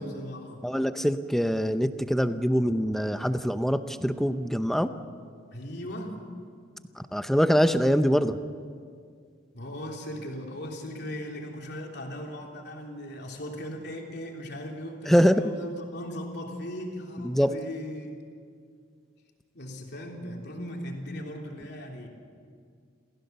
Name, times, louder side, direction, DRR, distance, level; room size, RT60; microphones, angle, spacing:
voice 1, 0.0-0.6 5.5-6.2 9.5-18.2 19.5-22.1, equal, 55° left, 0 dB, 3.2 m, -38 dB
voice 2, 0.6-4.9 7.0-8.4 15.1-15.4 17.2-17.5, equal, ahead, 10 dB, 0.7 m, -24 dB
27.5 x 16.0 x 6.8 m, 2.1 s
head